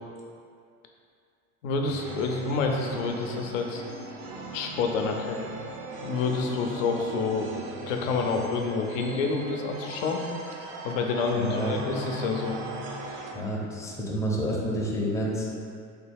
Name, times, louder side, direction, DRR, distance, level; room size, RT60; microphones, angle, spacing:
voice 1, 1.6-3.8 4.5-5.4 6.0-7.6 7.9-10.2 10.8-12.6, left 4 dB, 70° left, 3 dB, 0.6 m, -28 dB
sound 1, 1.9-13.3, right 1 dB, 65° right, 0.6 m, -39 dB
voice 2, 11.3-11.7 13.3-15.5, equal, 10° left, -4 dB, 0.5 m, -29 dB
3.4 x 2.3 x 3.4 m, 2.3 s
hypercardioid pair, 90°, 40 cm